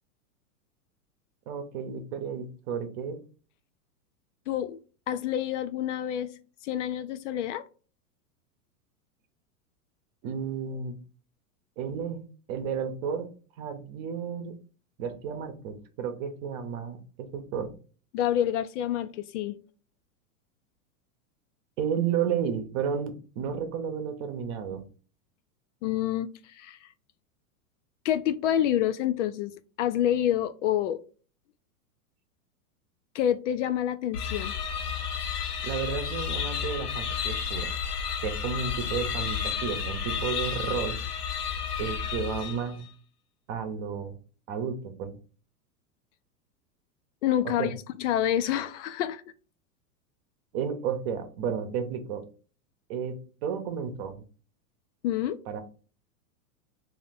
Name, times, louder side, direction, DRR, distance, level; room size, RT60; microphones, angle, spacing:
voice 1, 1.5-3.2 10.2-11.0 11.8-13.3 13.6-14.5 15.0-17.7 21.8-24.8 35.6-37.7 38.2-41.0 41.8-42.9 43.5-44.2 44.5-45.2 47.4-47.7 50.5-52.2 52.9-54.2 55.5-55.6, right 7 dB, 45° right, 0.9 m, -32 dB
voice 2, 4.5-4.8 5.1-6.3 6.6-7.6 18.1-19.6 25.8-26.9 28.0-29.5 29.8-31.0 33.1-34.5 47.2-49.2 55.0-55.4, left 11 dB, 55° left, 0.5 m, -28 dB
sound 1, 34.1-42.8, left 7 dB, 80° left, 1.0 m, -32 dB
3.3 x 2.8 x 4.0 m
hypercardioid pair, 125°, 45 cm